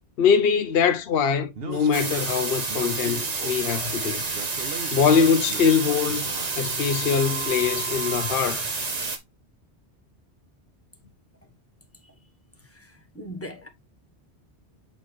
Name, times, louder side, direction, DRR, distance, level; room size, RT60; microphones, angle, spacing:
voice 1, 0.2-4.2 4.9-6.3 6.6-8.7, left 6 dB, 60° left, 1.0 m, -22 dB
Speech, 1.5-6.7, right 5 dB, 60° right, 1.2 m, -39 dB
sound 1, 1.7-9.1, right 9 dB, 90° right, 1.1 m, -42 dB
sound 2, 1.9-9.2, right 4 dB, 40° right, 1.1 m, -29 dB
voice 2, 12.7-13.7, equal, 15° left, 1.2 m, -39 dB
7.4 x 4.2 x 3.2 m
omnidirectional pair, 1.1 m